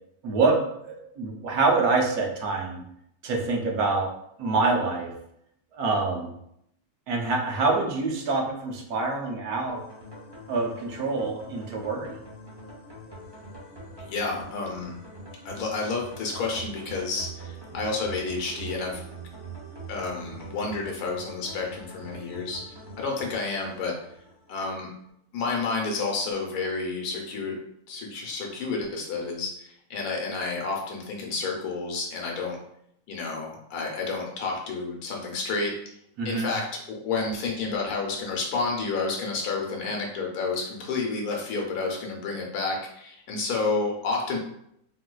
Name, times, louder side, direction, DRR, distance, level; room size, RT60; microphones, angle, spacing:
voice 1, 0.2-2.8 3.2-4.1 4.4-5.1 5.7-6.3 7.1-9.8 10.5-12.2 36.2-36.5, right 3 dB, 75° right, 1 dB, 1.2 m, -26 dB
sound 1, 9.7-24.7, right 3 dB, 30° right, 0.4 m, -43 dB
voice 2, 14.1-15.0 15.4-19.0 19.9-22.6 23.0-23.9 24.5-24.9 25.3-27.6 27.9-32.6 33.1-35.9 36.2-44.4, left 3 dB, 75° left, 0 dB, 1.2 m, -30 dB
3.7 x 2.6 x 2.2 m, 0.75 s
omnidirectional pair, 1.7 m